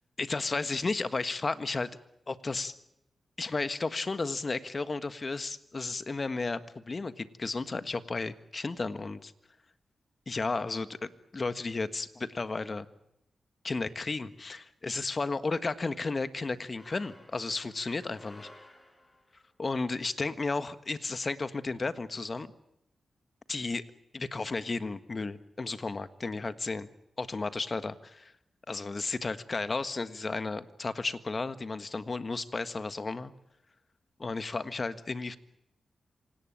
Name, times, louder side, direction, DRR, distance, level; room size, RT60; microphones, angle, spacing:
voice 1, 0.2-1.9 2.3-2.8 3.4-9.3 10.3-12.9 13.6-18.5 19.6-22.5 23.5-23.8 24.1-26.9 27.2-28.3 28.7-33.3 34.2-35.4, left 3 dB, 45° left, 12 dB, 1.5 m, -33 dB
sound 1, 16.8-19.4, left 1 dB, 20° left, 7.4 m, -54 dB
26.5 x 18.0 x 9.0 m, 0.86 s
cardioid pair, 45°, 0 cm